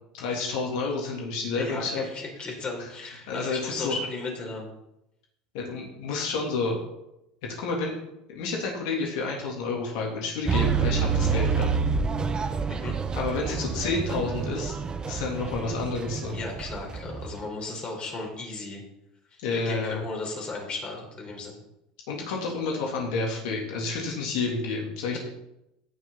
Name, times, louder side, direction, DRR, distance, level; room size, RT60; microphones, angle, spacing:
voice 1, 0.1-2.0 3.3-4.0 5.5-6.8 7.6-8.0 8.3-11.7 13.1-14.7 15.1-16.4 19.4-20.1 22.1-25.2, left 3 dB, 75° left, -1 dB, 3.3 m, -30 dB
voice 2, 1.6-4.7 12.7-12.9 14.2-14.3 16.3-18.8 19.3-21.6 25.1-25.2, left 3 dB, 35° left, 0 dB, 4.5 m, -35 dB
sound 1, 10.5-17.5, right 5 dB, 25° right, 0.9 m, -28 dB
16.5 x 6.4 x 4.2 m, 0.86 s
supercardioid pair, 100°, 3 cm